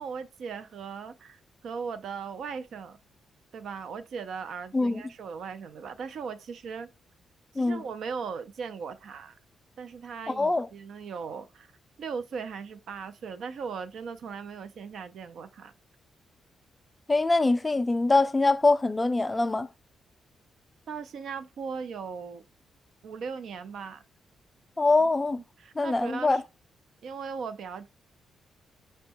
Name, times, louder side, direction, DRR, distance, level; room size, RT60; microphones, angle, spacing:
voice 1, 0.0-3.0 3.5-6.9 7.6-9.3 9.8-11.7 12.0-15.7 20.9-22.4 23.0-24.0 25.0-25.1 25.6-26.4 27.0-27.9, right 5 dB, 70° right, 0.4 m, -38 dB
voice 2, 10.3-10.7 17.1-19.7 24.8-25.4 25.8-26.4, left 3 dB, 15° left, 0.3 m, -23 dB
5.3 x 2.2 x 2.7 m
cardioid pair, 100°, 0 cm